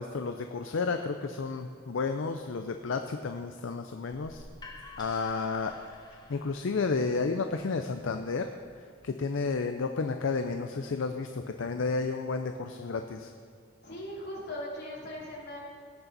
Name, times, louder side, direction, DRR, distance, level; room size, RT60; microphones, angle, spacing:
voice 1, 0.0-4.4 5.0-5.8 6.3-8.5 9.0-13.3, left 4 dB, 70° left, 6 dB, 0.5 m, -31 dB
sound 1, 4.1-9.9, left 2 dB, 20° left, 1.0 m, -52 dB
voice 2, 13.8-15.6, left 1 dB, 55° left, -5 dB, 3.1 m, -39 dB
17.5 x 6.9 x 4.0 m, 2.1 s
head